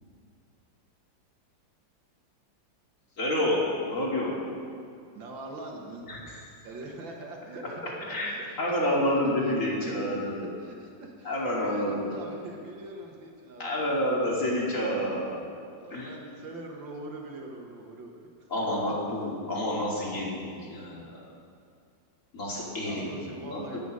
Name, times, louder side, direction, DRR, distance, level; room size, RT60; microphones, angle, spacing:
voice 1, 3.2-4.3 6.1-6.4 8.1-10.5 11.2-12.1 13.6-15.4 15.9-16.1 18.5-21.2 22.3-23.8, left 1 dB, 40° left, -5 dB, 3.0 m, -29 dB
voice 2, 5.1-6.0 6.6-9.0 9.5-9.6 10.0-10.1 10.6-14.0 15.8-18.3 18.6-19.1 22.9-23.8, right 2 dB, 80° right, 0 dB, 2.3 m, -43 dB
18.0 x 7.0 x 6.3 m, 2.3 s
omnidirectional pair, 2.1 m